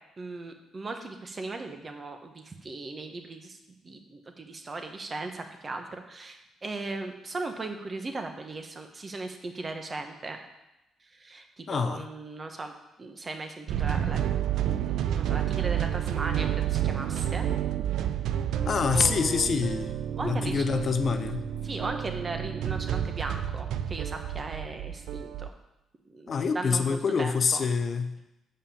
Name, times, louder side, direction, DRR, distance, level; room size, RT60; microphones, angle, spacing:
voice 1, 0.2-3.6 3.8-10.4 11.1-12.7 13.0-14.2 14.6-17.5 18.9-19.6 20.2-20.6 21.6-25.5 26.1-27.6, right 3 dB, 35° right, 5 dB, 1.2 m, -37 dB
voice 2, 11.7-12.1 18.6-19.9 20.2-21.5 26.3-28.2, left 5 dB, 50° left, 10 dB, 0.5 m, -26 dB
sound 1, 13.7-25.5, right 10 dB, 80° right, 0.4 m, -30 dB
7.2 x 5.5 x 7.1 m, 0.92 s
cardioid pair, 90°, 0 cm